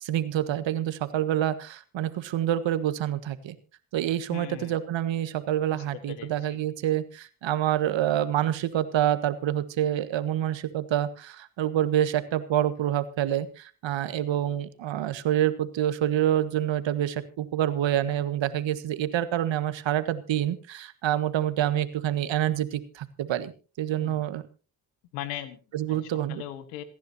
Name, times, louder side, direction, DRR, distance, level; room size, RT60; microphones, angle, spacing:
voice 1, 0.0-3.5 3.9-23.5 23.8-24.4 25.7-26.4, right 11 dB, 65° right, 13 dB, 1.7 m, -27 dB
voice 2, 4.3-4.8 5.7-6.6 24.0-24.2 25.1-25.6 25.9-26.8, left 12 dB, 85° left, 12 dB, 1.8 m, -39 dB
27.0 x 10.5 x 2.8 m, 0.34 s
hypercardioid pair, 45°, 49 cm